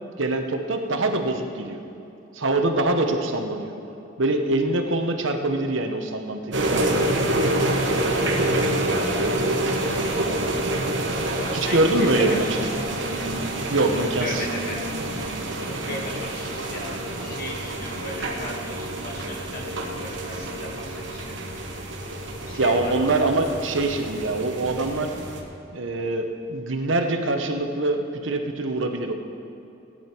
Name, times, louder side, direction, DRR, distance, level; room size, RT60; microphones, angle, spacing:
voice 1, 0.2-1.8 2.3-3.7 4.2-7.0 9.2-9.4 11.5-12.6 13.7-14.5 22.6-25.1 25.7-29.1, right 2 dB, 85° right, 5 dB, 1.2 m, -24 dB
sound 1, 6.5-25.4, right 1 dB, 70° right, 1.5 m, -27 dB
voice 2, 8.0-8.5 11.2-12.5 13.9-14.9 15.6-21.4 22.5-22.9, left 1 dB, 50° left, 0 dB, 1.9 m, -36 dB
17.5 x 10.0 x 4.6 m, 2.8 s
head